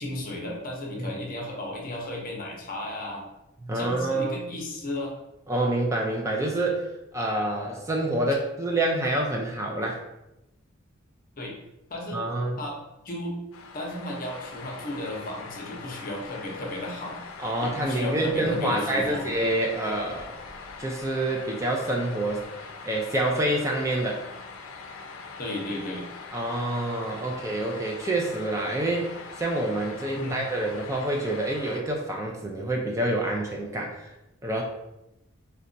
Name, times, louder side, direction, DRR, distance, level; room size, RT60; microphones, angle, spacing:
voice 1, 0.0-3.3 3.7-5.1 11.4-11.6 11.9-12.2 12.6-12.8 13.0-13.4 13.7-17.2 17.6-19.3 25.4-26.0 30.1-30.5, left 1 dB, 45° left, -1 dB, 0.7 m, -34 dB
voice 2, 3.6-4.3 5.5-6.9 7.1-10.0 12.1-12.6 17.4-20.4 20.8-22.4 22.8-24.2 26.3-34.1 34.4-34.6, right 1 dB, 15° right, 0 dB, 0.3 m, -27 dB
sound 1, 13.5-31.8, left 4 dB, 90° left, 0.4 m, -42 dB
3.9 x 2.2 x 2.5 m, 0.90 s
head